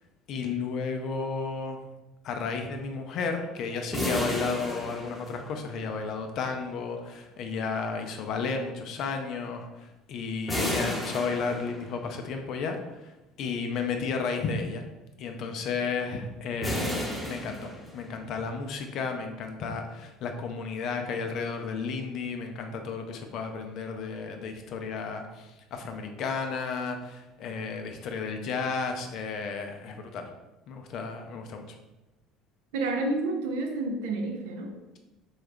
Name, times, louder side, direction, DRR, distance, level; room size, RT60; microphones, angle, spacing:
voice 1, 0.3-1.8 2.2-13.1 13.4-14.8 15.2-30.3 30.7-31.8, left 5 dB, 60° left, 5 dB, 0.5 m, -33 dB
sound 1, 3.9-5.8 10.5-12.1 16.6-18.3, equal, ahead, 0.8 m, -32 dB
voice 2, 32.7-34.8, right 2 dB, 75° right, 3 dB, 0.5 m, -30 dB
3.4 x 2.3 x 3.3 m, 1.0 s
hypercardioid pair, 65°, 0 cm